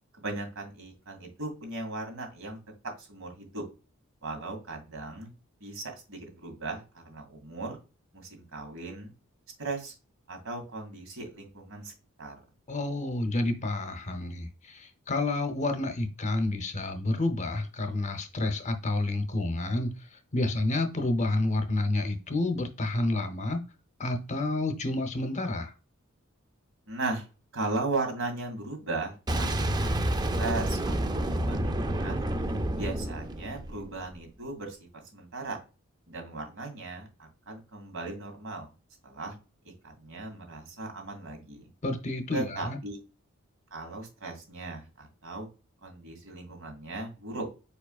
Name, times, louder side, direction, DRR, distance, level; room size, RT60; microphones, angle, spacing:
voice 1, 0.1-2.6 3.0-3.6 4.2-5.3 5.6-7.8 8.1-9.1 9.6-9.9 10.3-11.9 12.2-12.3 26.9-27.3 27.5-29.7 30.1-32.2 32.7-34.8 35.1-35.6 36.1-38.7 39.0-39.4 39.8-41.7 42.3-43.0 43.7-45.5 45.8-47.5, right 3 dB, 75° right, 2 dB, 2.1 m, -37 dB
voice 2, 12.7-20.0 20.3-23.6 24.0-25.7 41.8-42.8, left 2 dB, 35° left, 6 dB, 0.7 m, -29 dB
Boom, 29.3-34.1, right 1 dB, 20° right, 0.4 m, -29 dB
4.8 x 4.7 x 2.3 m, 0.31 s
head